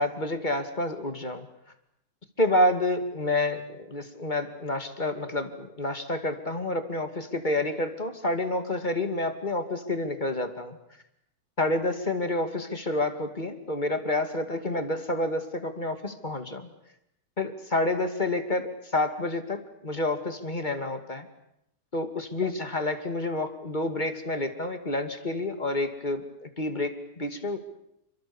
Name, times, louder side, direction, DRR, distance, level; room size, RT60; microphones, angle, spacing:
voice 1, 0.0-1.5 2.4-10.8 11.6-16.7 17.4-21.3 21.9-27.6, left 2 dB, 25° left, 8 dB, 2.5 m, -29 dB
29.0 x 25.5 x 7.2 m, 0.77 s
omnidirectional pair, 1.8 m